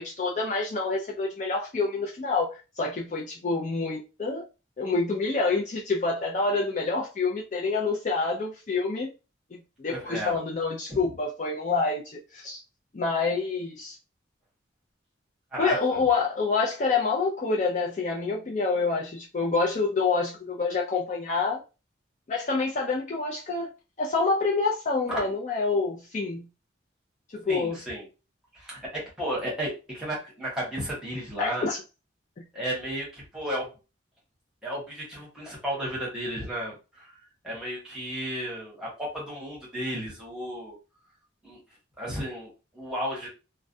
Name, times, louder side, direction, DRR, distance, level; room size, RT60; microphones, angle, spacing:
voice 1, 0.0-4.4 4.8-9.1 9.5-12.6 12.9-14.0 15.6-21.6 22.3-23.7 24.0-26.5 27.3-27.8 31.4-31.8 32.4-32.5, left 4 dB, 40° left, 0.4 m, -27 dB
voice 2, 9.9-10.3 10.9-11.1 15.5-16.0 25.1-25.2 27.5-28.0 28.5-31.7 32.5-33.7 34.6-37.1 37.4-40.7 41.4-41.6 42.0-43.3, equal, 5° right, 0.9 m, -33 dB
2.3 x 2.0 x 2.6 m
head